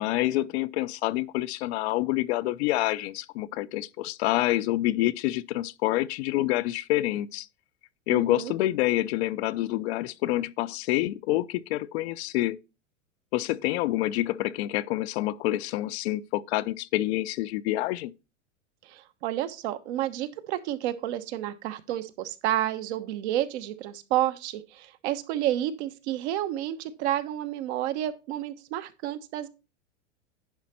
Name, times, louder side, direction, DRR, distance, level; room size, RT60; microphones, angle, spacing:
voice 1, 0.0-7.5 8.1-12.6 13.3-18.1, left 16 dB, 60° left, 0.6 m, -27 dB
voice 2, 8.1-8.5 18.8-29.5, right 12 dB, 60° right, 1.2 m, -30 dB
10.5 x 5.1 x 4.3 m
hypercardioid pair, 110°, 37 cm